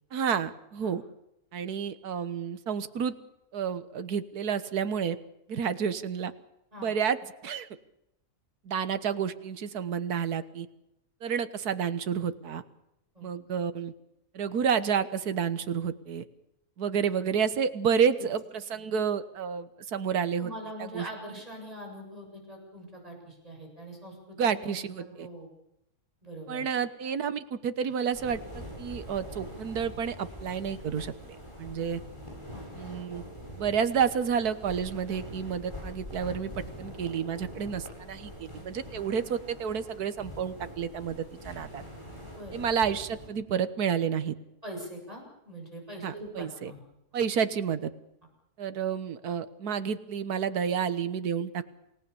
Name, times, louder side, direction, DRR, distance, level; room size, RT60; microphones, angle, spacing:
voice 1, 0.1-1.0 1.5-3.2 3.5-5.2 5.5-6.3 6.8-7.2 7.4-7.7 8.7-10.7 11.2-12.6 13.2-13.9 14.3-16.2 16.8-18.4 18.7-20.5 20.9-21.1 24.4-25.3 26.5-32.0 32.8-33.2 33.6-36.5 36.8-41.8 42.5-44.3 46.0-46.7 47.1-47.9 48.6-51.7, right 7 dB, 80° right, 12 dB, 1.8 m, -30 dB
voice 2, 17.9-18.3 20.4-25.5 26.2-26.6 32.5-32.7 42.2-42.6 44.6-46.8, equal, 25° right, 1 dB, 7.8 m, -43 dB
sound 1, 28.1-43.3, equal, 20° left, 8.1 m, -44 dB
28.5 x 18.5 x 7.0 m, 0.84 s
omnidirectional pair, 1.6 m